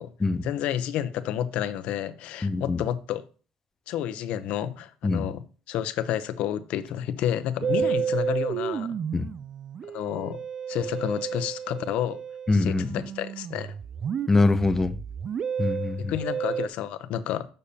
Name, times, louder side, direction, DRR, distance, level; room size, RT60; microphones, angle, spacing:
voice 1, 0.4-3.2 3.9-5.4 5.7-9.0 9.9-10.4 10.7-12.2 12.5-13.7 16.0-17.5, left 11 dB, 70° left, 0.7 m, -30 dB
voice 2, 2.4-2.8 5.0-5.2 9.1-9.3 12.5-13.0 14.3-15.0 15.6-16.1, left 3 dB, 15° left, 0.6 m, -23 dB
Musical instrument, 7.6-16.7, right 7 dB, 40° right, 0.3 m, -31 dB
8.3 x 6.5 x 2.8 m
cardioid pair, 115°, 2 cm